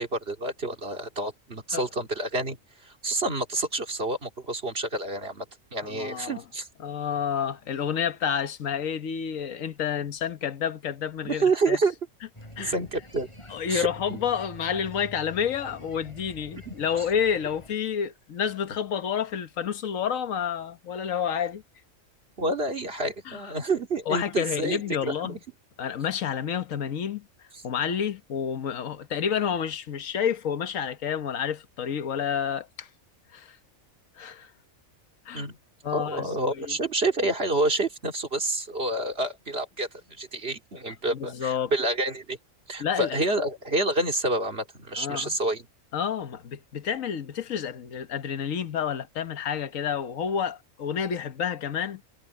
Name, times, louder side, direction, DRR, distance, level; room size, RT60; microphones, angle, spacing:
voice 1, 0.0-2.6 2.8-5.4 5.7-6.7 11.2-11.9 12.6-13.3 13.7-14.2 16.7-16.8 22.4-25.4 35.3-35.6 35.9-42.4 42.7-45.7, right 2 dB, 45° right, 2.6 m, -28 dB
voice 2, 5.8-6.4 6.8-11.8 12.6-12.8 13.5-21.6 23.3-23.4 24.1-25.4 25.8-27.2 27.6-32.9 33.3-33.6 34.2-34.5 35.2-35.5 35.8-36.6 41.1-41.7 42.8-43.2 45.0-45.3 45.9-52.0, left 8 dB, 75° left, 1.5 m, -29 dB
sound 1, 12.3-17.7, left 1 dB, 20° left, 8.2 m, -46 dB
omnidirectional pair, 1.4 m